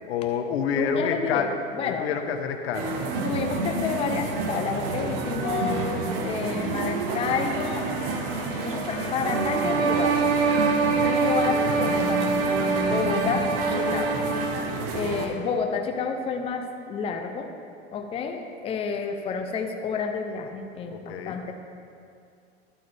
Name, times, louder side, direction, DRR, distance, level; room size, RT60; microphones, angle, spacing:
voice 1, 0.1-1.5 1.8-2.9 20.9-21.4, left 7 dB, 75° left, 6 dB, 1.0 m, -28 dB
voice 2, 0.7-1.5 1.7-2.1 3.2-7.9 8.6-10.4 11.0-12.2 12.7-14.2 14.9-17.5 17.9-21.5, left 5 dB, 20° left, 4 dB, 0.6 m, -30 dB
sound 1, 2.7-15.3, right 3 dB, 60° right, 1.3 m, -29 dB
Organ, 7.1-12.8, left 3 dB, 45° left, 2.0 m, -42 dB
sound 2, 9.2-14.6, right 4 dB, 80° right, 1.3 m, -25 dB
12.0 x 8.4 x 3.4 m, 2.4 s
supercardioid pair, 130°, 32 cm